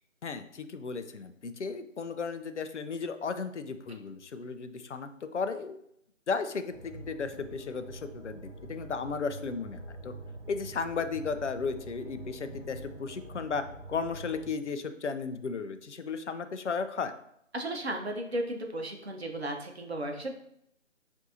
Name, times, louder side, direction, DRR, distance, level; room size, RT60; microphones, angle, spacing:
voice 1, 0.2-5.8 6.3-10.1 10.5-17.1, left 5 dB, 65° left, 9 dB, 0.5 m, -35 dB
sound 1, 6.7-14.5, right 2 dB, 25° right, 1.0 m, -45 dB
voice 2, 17.5-20.3, right 1 dB, 55° right, 3 dB, 0.9 m, -34 dB
7.4 x 2.7 x 2.7 m, 0.73 s
figure-of-eight pair, 160°, 39 cm